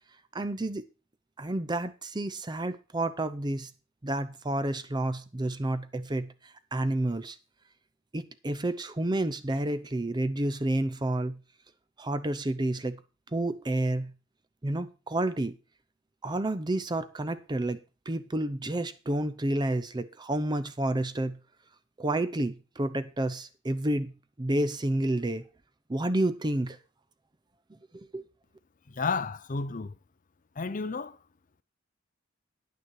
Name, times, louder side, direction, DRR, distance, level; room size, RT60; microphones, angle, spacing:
voice 1, 0.3-0.8 1.4-3.7 4.0-7.4 8.1-11.4 12.0-13.0 13.3-14.1 14.6-15.5 16.2-17.8 18.1-21.4 22.0-24.1 24.4-25.4 25.9-26.8 27.9-28.2, right 1 dB, 20° right, 0.6 m, -30 dB
voice 2, 28.9-30.0 30.6-31.2, left 4 dB, 40° left, 0.6 m, -32 dB
9.8 x 9.3 x 4.6 m
head